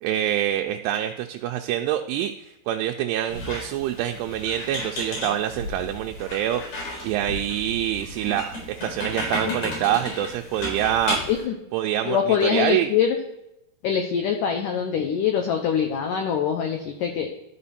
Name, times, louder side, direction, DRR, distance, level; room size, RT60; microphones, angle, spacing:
voice 1, 0.0-6.6 7.0-11.2 11.7-12.9, right 11 dB, 85° right, 4 dB, 2.6 m, -26 dB
Squeak, 3.3-11.4, left 1 dB, 60° left, 5.9 m, -33 dB
voice 2, 12.1-13.2 13.8-17.3, left 8 dB, 85° left, 4 dB, 1.8 m, -24 dB
13.5 x 5.0 x 4.2 m, 0.85 s
omnidirectional pair, 4.9 m